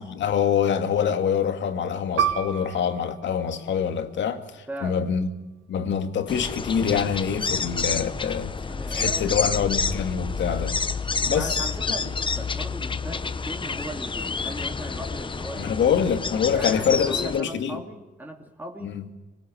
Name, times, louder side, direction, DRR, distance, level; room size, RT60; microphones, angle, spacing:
voice 1, 0.0-5.3 5.7-8.5 8.9-10.8 11.3-11.7 15.6-17.8 18.8-19.1, left 7 dB, 65° left, 2.3 m, -25 dB
Piano, 2.2-7.2 7.6-7.7 8.5-8.9, right 8 dB, 85° right, 1.7 m, -33 dB
voice 2, 4.7-5.0 8.7-9.5 11.2-15.8 16.5-19.0, right 1 dB, 10° right, 2.7 m, -38 dB
sound 1, 6.3-17.4, left 5 dB, 25° left, 0.8 m, -29 dB
24.5 x 19.0 x 9.3 m
cardioid pair, 90°, 20 cm